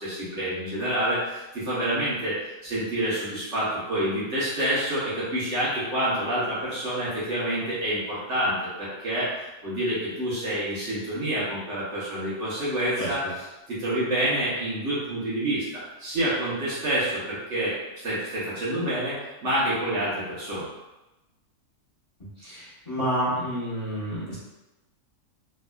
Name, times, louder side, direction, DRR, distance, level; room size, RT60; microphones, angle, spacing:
voice 1, 0.0-9.3 9.6-13.2 13.7-15.6 16.0-20.7, right 1 dB, 60° right, -9 dB, 1.3 m, -28 dB
voice 2, 22.4-24.4, equal, 25° left, -12 dB, 1.3 m, -29 dB
3.4 x 2.7 x 2.2 m, 1.0 s
omnidirectional pair, 1.5 m